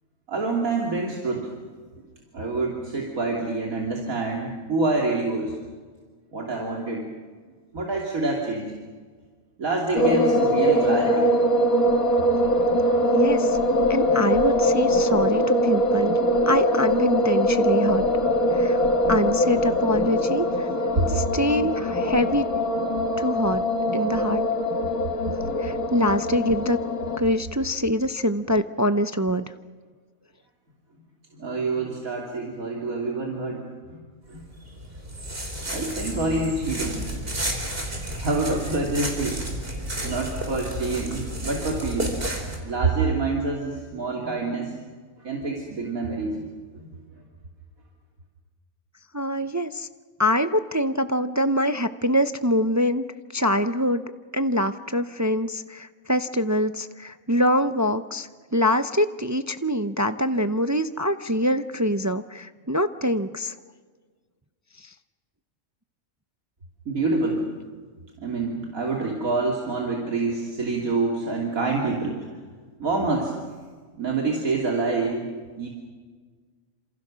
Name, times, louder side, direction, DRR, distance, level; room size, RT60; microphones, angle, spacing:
voice 1, 0.3-1.6 2.3-5.6 6.3-7.1 7.7-8.7 9.6-11.3 21.0-21.1 25.7-25.8 31.3-34.0 34.3-34.4 35.7-37.6 38.2-39.6 40.0-42.2 42.6-44.8 45.2-46.4 46.7-46.9 66.8-67.5 68.2-72.2 72.8-73.3 74.0-75.3 75.6-75.7, right 3 dB, 80° right, -1 dB, 3.3 m, -27 dB
sound 1, 10.0-27.2, equal, 85° left, 2.3 m, -22 dB
voice 2, 13.1-13.6 13.9-16.2 16.5-18.0 18.5-20.7 21.1-22.5 23.2-23.6 23.9-24.4 25.6-26.8 27.2-29.4 49.1-49.9 50.2-53.0 53.3-54.0 54.3-63.5 64.8-64.9, equal, 25° right, 10 dB, 0.4 m, -24 dB
sound 2, 34.3-42.6, right 1 dB, 40° right, 4.5 m, -31 dB
29.0 x 27.0 x 6.3 m, 1.5 s
omnidirectional pair, 1.4 m